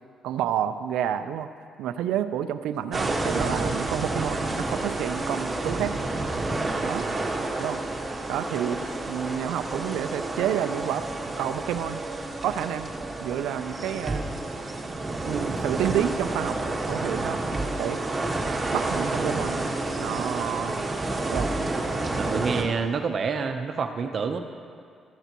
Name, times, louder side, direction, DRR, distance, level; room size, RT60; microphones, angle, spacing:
voice 1, 0.2-1.5 1.8-6.0 6.8-7.0 7.6-7.8 8.3-8.8 9.1-11.0 11.4-12.0 12.4-12.9 13.2-14.4 15.2-16.6 16.9-17.4 17.8-18.0 18.7-19.7 20.0-20.9 21.3-21.5, right 10 dB, 90° right, 10 dB, 0.5 m, -29 dB
sound 1, 2.9-22.6, right 2 dB, 25° right, 1.5 m, -29 dB
voice 2, 7.0-7.5 17.1-17.4 22.2-24.4, right 5 dB, 55° right, 6 dB, 0.8 m, -29 dB
15.0 x 14.0 x 3.0 m, 2.3 s
cardioid pair, 90°, 0 cm